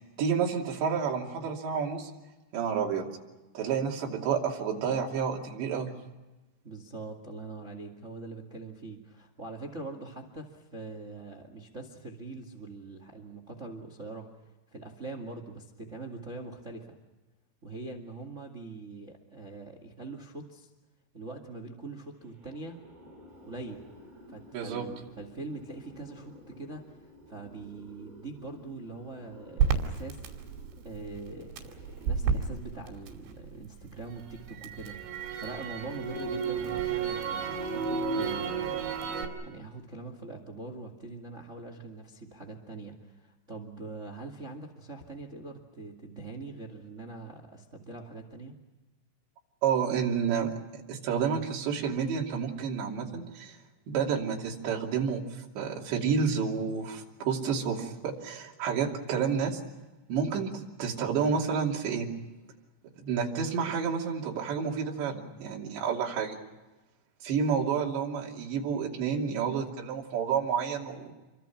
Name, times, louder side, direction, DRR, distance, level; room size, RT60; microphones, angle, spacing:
voice 1, 0.0-2.1 2.5-3.1 3.5-5.9 24.5-24.8 49.6-53.6 53.9-59.6 60.1-62.1 63.0-66.4 67.2-71.1, right 6 dB, 65° right, 0 dB, 4.9 m, -30 dB
voice 2, 6.6-14.3 14.7-17.0 17.6-20.7 21.1-22.8 23.4-23.9 24.3-30.5 30.8-38.9 39.4-48.5, right 3 dB, 50° right, 5 dB, 0.8 m, -43 dB
sound 1, 22.2-33.3, left 1 dB, 10° right, 7.9 m, -54 dB
Crackle, 29.6-33.7 34.1-39.3, right 6 dB, 85° right, 5.1 m, -31 dB
28.0 x 24.5 x 5.9 m, 1.1 s
omnidirectional pair, 5.5 m